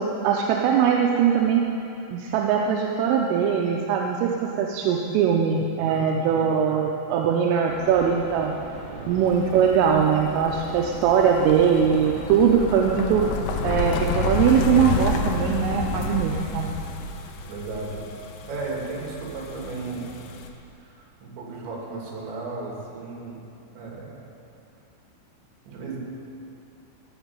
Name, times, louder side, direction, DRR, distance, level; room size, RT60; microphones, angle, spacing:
voice 1, 0.0-1.6 2.1-8.5 9.1-13.3 13.6-16.7, right 7 dB, 85° right, 1 dB, 3.4 m, -21 dB
voice 2, 6.3-6.8 8.9-9.1 17.4-18.0 18.5-20.1 20.9-23.4 23.7-24.2 25.7-26.0, right 3 dB, 65° right, -3 dB, 4.7 m, -35 dB
sound 1, 7.6-12.9, right 2 dB, 40° right, 5.0 m, -40 dB
sound 2, 9.2-20.5, left 4 dB, 80° left, 3.4 m, -30 dB
14.0 x 7.4 x 9.6 m, 2.7 s
omnidirectional pair, 5.7 m